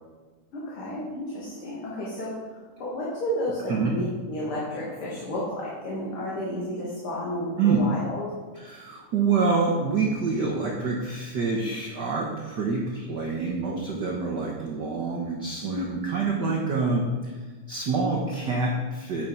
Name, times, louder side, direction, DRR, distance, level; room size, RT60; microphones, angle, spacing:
voice 1, 0.5-8.3, left 1 dB, 50° left, -7 dB, 2.6 m, -32 dB
voice 2, 8.5-17.3 17.7-19.3, right 4 dB, 75° right, -1 dB, 0.9 m, -26 dB
9.5 x 5.9 x 5.3 m, 1.3 s
omnidirectional pair, 3.3 m